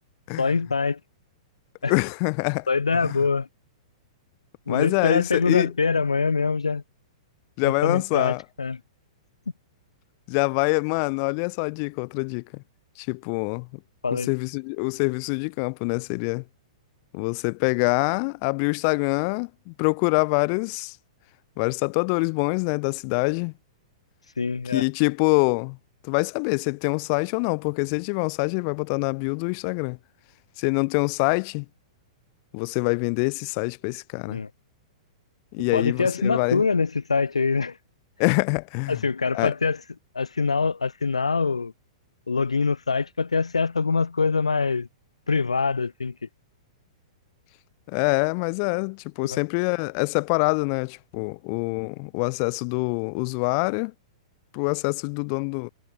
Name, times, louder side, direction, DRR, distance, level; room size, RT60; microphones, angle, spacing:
voice 1, 0.4-1.0 1.8-1.9 2.7-3.5 4.7-6.8 7.6-8.8 14.0-14.3 24.4-24.8 34.3-34.5 35.7-37.8 38.9-39.8 40.1-41.7 42.3-44.9 45.3-46.1 49.3-49.4, left 4 dB, 80° left, 1.5 m, -24 dB
voice 2, 1.9-2.7 3.0-3.2 4.7-5.7 7.6-8.4 10.3-12.6 13.0-13.7 14.1-16.4 17.1-21.0 21.6-23.5 24.7-25.8 26.0-30.0 30.6-31.6 32.5-34.4 35.5-36.6 38.2-39.0 39.3-39.5 47.9-53.9 54.5-55.7, left 39 dB, 45° left, 2.6 m, -25 dB
figure-of-eight pair, 105°, 3 cm